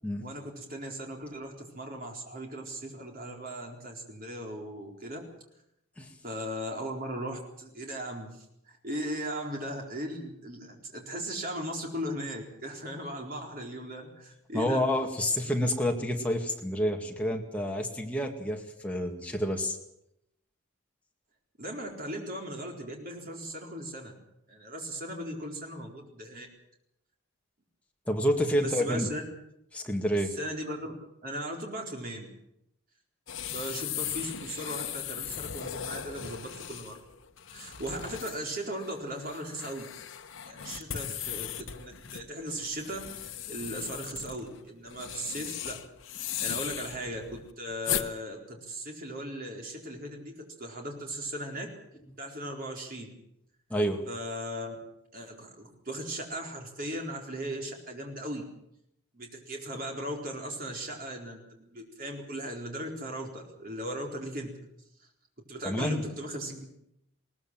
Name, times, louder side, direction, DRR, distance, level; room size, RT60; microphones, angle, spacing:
voice 1, 0.2-5.2 6.2-14.8 21.6-24.1 24.5-26.5 28.6-29.2 30.3-30.9 31.2-32.3 33.5-37.0 37.5-39.9 40.4-45.8 46.1-51.7 52.2-53.1 54.1-54.8 55.1-58.4 59.1-64.5 65.0-65.1 65.5-66.6, right 1 dB, 40° right, 1 dB, 4.2 m, -38 dB
voice 2, 14.5-19.8 28.1-29.1 29.7-30.3 53.7-54.1 65.6-66.0, equal, 5° left, 1 dB, 2.1 m, -29 dB
sound 1, 33.3-48.1, left 10 dB, 60° left, 1.2 m, -38 dB
20.5 x 18.5 x 7.6 m, 0.80 s
head